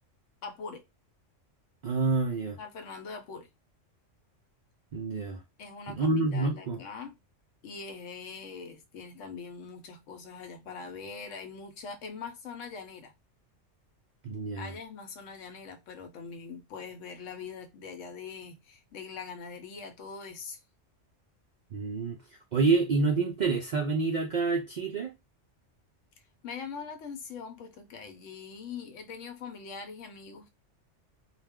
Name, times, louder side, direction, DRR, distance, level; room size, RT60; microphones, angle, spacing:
voice 1, 0.4-0.8 2.6-3.5 5.6-7.1 7.6-13.1 14.6-20.6 26.4-30.5, left 5 dB, 85° left, 1.0 m, -42 dB
voice 2, 1.8-2.6 4.9-5.4 6.0-6.8 14.2-14.7 21.7-22.2 22.5-25.1, right 3 dB, 65° right, 0.4 m, -27 dB
2.3 x 2.1 x 3.4 m
omnidirectional pair, 1.3 m